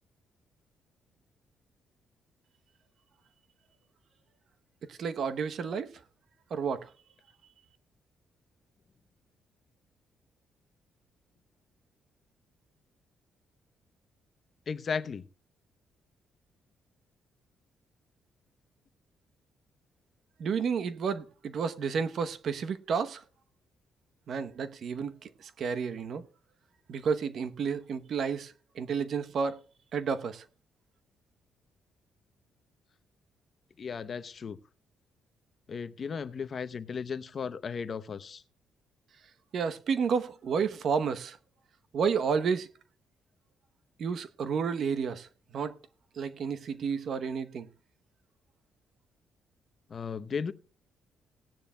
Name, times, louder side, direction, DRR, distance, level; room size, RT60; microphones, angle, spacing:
voice 1, 4.9-5.9 6.5-6.9 20.4-23.2 24.3-26.2 26.9-29.6 29.9-30.4 39.5-41.4 41.9-42.7 44.0-45.3 45.5-45.8 46.1-47.7, right 6 dB, 60° right, 0.9 m, -31 dB
voice 2, 14.7-15.2 33.8-34.6 35.7-38.4 49.9-50.5, left 6 dB, 45° left, 0.8 m, -35 dB
18.0 x 10.0 x 2.2 m
cardioid pair, 105°, 0 cm